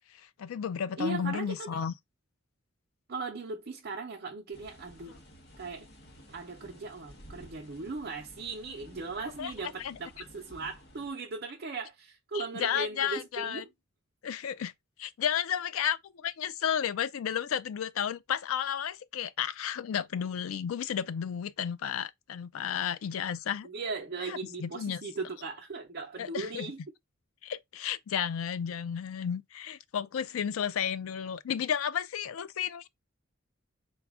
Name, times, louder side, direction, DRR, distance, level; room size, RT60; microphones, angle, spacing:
voice 1, 0.1-1.9 9.4-9.5 9.8-10.0 12.3-13.6 14.2-14.7 15.0-23.7 24.3-25.0 26.2-26.7 27.4-32.9, left 8 dB, 85° left, 0.4 m, -33 dB
voice 2, 1.0-1.9 3.1-5.2 5.6-5.9 6.3-13.7 23.6-26.8, right 3 dB, 50° right, 0.6 m, -38 dB
sound 1, 4.5-11.1, equal, 55° left, 1.0 m, -53 dB
4.0 x 2.3 x 3.5 m
head